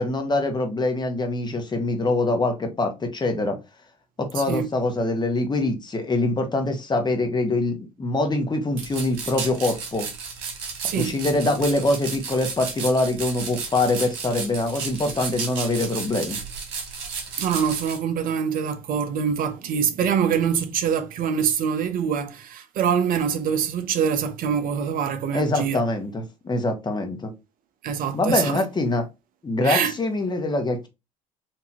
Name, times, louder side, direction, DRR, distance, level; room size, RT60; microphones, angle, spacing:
voice 1, 0.0-3.6 4.2-10.1 10.9-16.4 25.3-27.3 28.1-29.1 29.4-30.9, left 2 dB, 25° left, 1.2 m, -24 dB
voice 2, 4.3-4.7 10.8-11.5 17.4-25.8 27.8-28.6 29.6-29.9, right 7 dB, 55° right, 0.7 m, -24 dB
sound 1, 8.8-18.0, right 5 dB, 75° right, 1.1 m, -33 dB
4.5 x 2.7 x 2.9 m
hypercardioid pair, 65°, 17 cm